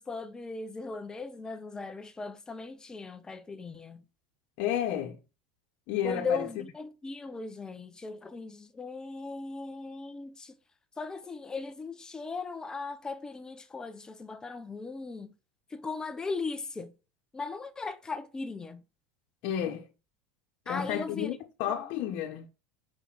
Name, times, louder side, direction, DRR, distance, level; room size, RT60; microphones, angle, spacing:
voice 1, 0.0-4.0 6.0-10.6 11.0-15.3 15.7-16.9 17.3-18.8 20.7-21.4 21.7-22.1, left 4 dB, 15° left, 1.0 m, -38 dB
voice 2, 4.6-5.2 5.9-6.6 19.4-19.8 20.7-22.5, left 10 dB, 55° left, 1.3 m, -31 dB
8.2 x 5.5 x 6.0 m
supercardioid pair, 150°, 5 cm